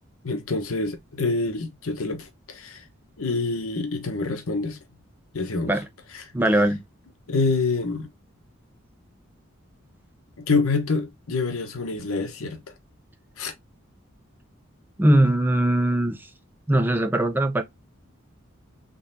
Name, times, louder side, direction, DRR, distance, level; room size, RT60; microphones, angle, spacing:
voice 1, 0.2-2.8 3.2-4.8 5.3-5.8 6.1-6.2 7.3-8.1 10.5-12.6 13.4-13.5, left 3 dB, 85° left, 0.9 m, -26 dB
voice 2, 6.3-6.8 15.0-16.3 16.7-17.6, right 1 dB, 10° right, 0.4 m, -20 dB
3.9 x 3.1 x 2.6 m
head